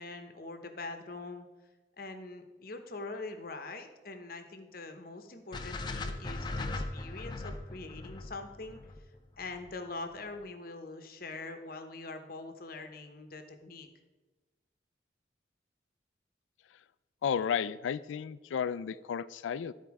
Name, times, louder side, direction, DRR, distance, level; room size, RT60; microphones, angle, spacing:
voice 1, 0.0-1.5 2.0-8.8 9.4-13.9, left 3 dB, 50° left, 7 dB, 0.8 m, -43 dB
sound 1, 5.5-9.7, left 2 dB, 25° left, 0.5 m, -38 dB
voice 2, 17.2-19.7, left 7 dB, 90° left, 17 dB, 0.3 m, -33 dB
12.0 x 4.4 x 4.7 m, 1.2 s
head